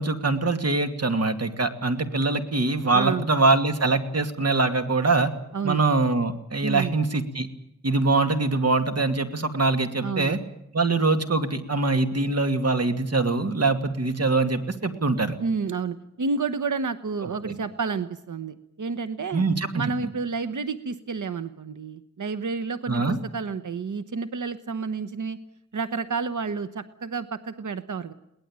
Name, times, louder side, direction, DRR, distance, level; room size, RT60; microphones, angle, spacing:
voice 1, 0.0-5.3 5.6-7.5 7.8-10.4 10.7-15.4 17.4-17.5 19.3-19.8 22.9-23.2, right 3 dB, 55° right, 7 dB, 2.5 m, -23 dB
voice 2, 2.9-3.2 5.5-5.8 6.6-6.9 10.0-10.3 15.4-19.4 19.7-25.4 25.7-28.1, right 4 dB, 80° right, 11 dB, 1.1 m, -30 dB
22.0 x 19.0 x 8.9 m, 0.80 s
wide cardioid pair, 95°, 30 cm